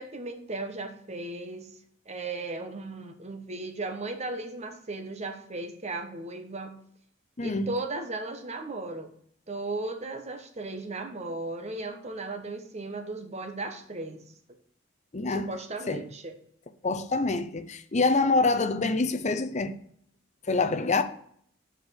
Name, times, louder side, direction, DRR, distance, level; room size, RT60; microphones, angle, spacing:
voice 1, 0.0-1.7 2.0-6.8 7.4-9.1 9.5-14.2 15.3-16.3, right 2 dB, 35° right, 1.2 m, -36 dB
voice 2, 7.4-7.7 15.1-15.5 15.9-16.0 16.8-19.7 20.5-21.0, left 3 dB, 35° left, 0.7 m, -26 dB
7.8 x 5.3 x 6.4 m
head